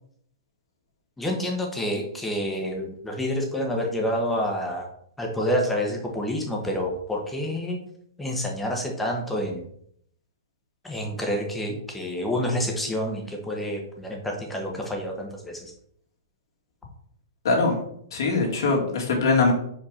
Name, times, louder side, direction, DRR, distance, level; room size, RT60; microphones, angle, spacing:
voice 1, 1.2-4.9 5.2-7.8 8.2-9.6 10.8-15.7, equal, 5° left, 0 dB, 1.0 m, -28 dB
voice 2, 17.4-17.8 18.1-19.5, left 3 dB, 70° left, -1 dB, 2.1 m, -22 dB
5.0 x 4.5 x 4.9 m, 0.68 s
hypercardioid pair, 165°, 2 cm